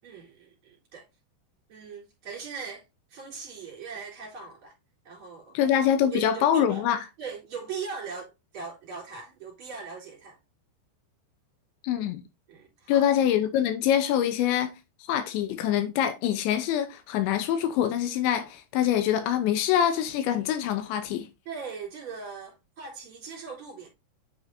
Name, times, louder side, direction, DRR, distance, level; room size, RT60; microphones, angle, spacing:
voice 1, 0.0-1.0 1.7-2.8 3.1-4.7 5.0-5.6 6.0-6.9 7.2-10.4 12.5-13.1 21.5-23.9, right 5 dB, 30° right, 4.0 m, -40 dB
voice 2, 5.5-7.1 11.8-12.2 12.9-14.7 15.1-21.3, left 10 dB, 85° left, 3.1 m, -25 dB
9.3 x 5.5 x 2.7 m
omnidirectional pair, 5.1 m